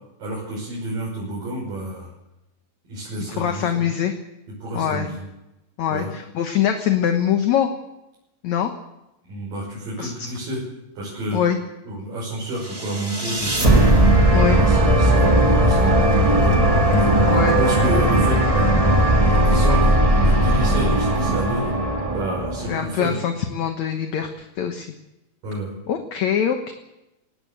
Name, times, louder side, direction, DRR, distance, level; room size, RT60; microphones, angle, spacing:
voice 1, 0.2-2.1 2.9-3.8 4.6-5.3 5.9-6.1 9.3-10.6 11.0-11.4 11.9-13.9 14.5-18.7 19.2-19.9 20.2-21.7 22.1-23.2 25.4-25.7, right 1 dB, 65° right, -5 dB, 7.6 m, -29 dB
voice 2, 3.4-4.1 4.7-5.1 5.8-7.7 8.4-8.7 10.0-10.1 11.3-11.6 14.3-14.6 17.3-17.6 22.7-24.9 25.9-26.7, left 9 dB, 60° left, 6 dB, 2.2 m, -23 dB
sound 1, 12.7-22.9, right 1 dB, 15° right, 1.5 m, -17 dB
20.5 x 18.0 x 8.2 m, 0.94 s
omnidirectional pair, 4.2 m